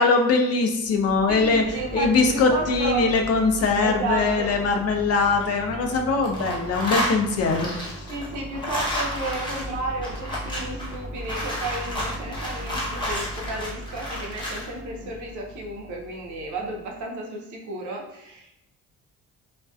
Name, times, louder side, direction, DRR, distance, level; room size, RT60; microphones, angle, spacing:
voice 1, 0.0-1.6 1.9-8.0, left 4 dB, 55° left, 4 dB, 0.4 m, -22 dB
sound 1, 0.8-17.0, right 1 dB, 20° right, 0.4 m, -39 dB
voice 2, 1.3-3.1 3.8-4.5 8.1-18.5, right 3 dB, 75° right, 0 dB, 0.6 m, -32 dB
sound 2, 5.4-6.0 6.2-14.7, left 1 dB, 15° left, 0.8 m, -31 dB
2.4 x 2.1 x 2.4 m, 0.88 s
cardioid pair, 90°, 30 cm